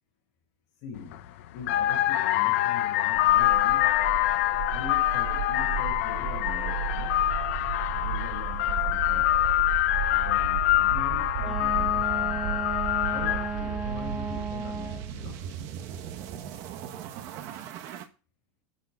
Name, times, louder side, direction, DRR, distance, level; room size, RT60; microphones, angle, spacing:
voice 1, 0.8-1.3 1.5-3.9 4.7-7.2 7.9-9.3 10.1-12.6 13.1-15.4, left 6 dB, 40° left, 5.0 m, -42 dB
sound 1, 1.0-1.2 1.6-13.7, left 15 dB, 60° left, 1.1 m, -25 dB
sound 2, 3.1-18.0, right 8 dB, 40° right, 1.3 m, -35 dB
Wind instrument woodwind instrument, 11.4-15.1, right 5 dB, 5° right, 1.3 m, -34 dB
10.5 x 8.9 x 6.1 m
supercardioid pair, 180°, 8 cm